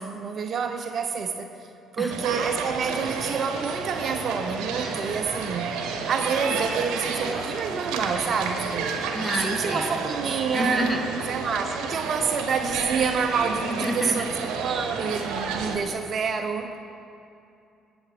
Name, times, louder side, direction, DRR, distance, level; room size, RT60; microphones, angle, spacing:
voice 1, 0.0-1.7 1.9-8.9 9.4-11.0 11.3-16.8, right 5 dB, 50° right, 6 dB, 0.9 m, -28 dB
sound 1, 2.1-15.8, right 5 dB, 65° right, 1.2 m, -31 dB
voice 2, 9.1-9.9 10.5-11.0 13.8-14.2, equal, 10° left, 4 dB, 1.6 m, -28 dB
19.0 x 7.1 x 5.1 m, 2.6 s
hypercardioid pair, 50°, 0 cm